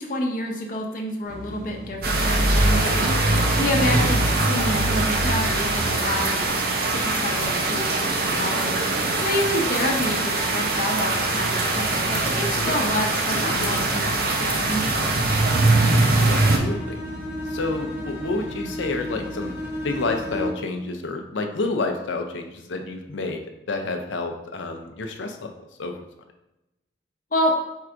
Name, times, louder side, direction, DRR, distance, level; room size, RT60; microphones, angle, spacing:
voice 1, 0.0-6.4 6.9-15.1 27.3-27.5, left 1 dB, 45° left, 1 dB, 0.7 m, -28 dB
sound 1, 1.2-20.5, equal, 85° right, 1.5 m, -39 dB
sound 2, 2.0-16.6, right 2 dB, 50° right, 0.6 m, -22 dB
voice 2, 13.3-13.7 16.2-17.0 17.5-19.5 19.8-23.4 23.7-25.5 25.8-26.0, left 3 dB, 85° left, 5 dB, 0.6 m, -29 dB
Bowed string instrument, 16.7-20.8, left 1 dB, 10° right, 0.7 m, -33 dB
4.5 x 2.5 x 4.4 m, 0.94 s
head